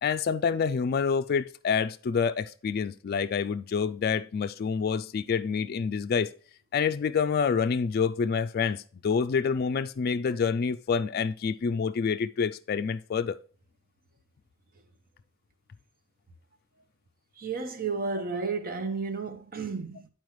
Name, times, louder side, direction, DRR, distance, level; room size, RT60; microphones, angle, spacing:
voice 1, 0.0-6.3 6.7-13.4, left 6 dB, 50° left, 0.3 m, -27 dB
voice 2, 17.4-20.1, right 4 dB, 45° right, 0.9 m, -32 dB
11.0 x 4.5 x 3.1 m
head